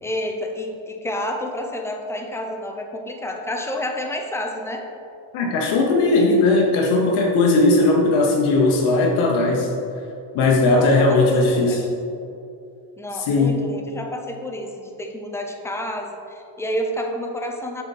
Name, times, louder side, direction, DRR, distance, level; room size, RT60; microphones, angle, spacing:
voice 1, 0.0-4.8 10.7-11.2 11.5-11.9 13.0-17.8, left 1 dB, 5° left, 2 dB, 0.5 m, -29 dB
voice 2, 5.3-9.7 10.3-11.8 13.3-13.6, left 2 dB, 70° left, 0 dB, 1.0 m, -18 dB
6.8 x 4.7 x 4.2 m, 2.6 s
cardioid pair, 125°, 50 cm